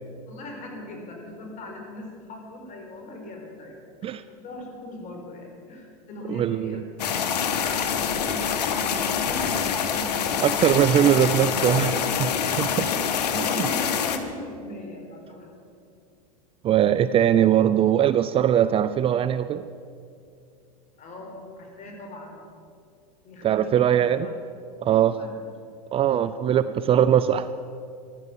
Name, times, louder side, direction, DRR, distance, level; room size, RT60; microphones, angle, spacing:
voice 1, 0.3-11.3 11.7-12.1 12.7-15.7 21.0-22.4 23.2-24.4 24.8-25.4, left 2 dB, 40° left, 1 dB, 4.5 m, -39 dB
voice 2, 6.3-6.8 10.4-11.9 12.6-12.9 16.6-19.6 23.4-24.3 24.8-25.1 25.9-27.5, right 10 dB, 30° right, 13 dB, 0.4 m, -20 dB
sound 1, 7.0-14.2, left 7 dB, 80° left, 1.4 m, -26 dB
14.5 x 12.0 x 7.2 m, 2.4 s
supercardioid pair, 115°, 20 cm